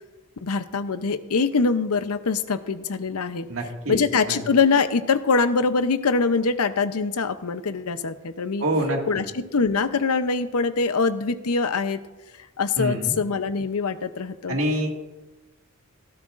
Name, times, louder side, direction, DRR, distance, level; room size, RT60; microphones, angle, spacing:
voice 1, 0.4-3.5 3.9-8.6 9.1-12.0 12.6-14.6, left 4 dB, 80° left, 11 dB, 0.7 m, -23 dB
voice 2, 3.5-4.0 4.3-4.4 8.6-9.0 12.8-13.2 14.5-14.9, right 1 dB, 65° right, 0 dB, 2.0 m, -25 dB
16.5 x 12.5 x 2.5 m, 1.2 s
head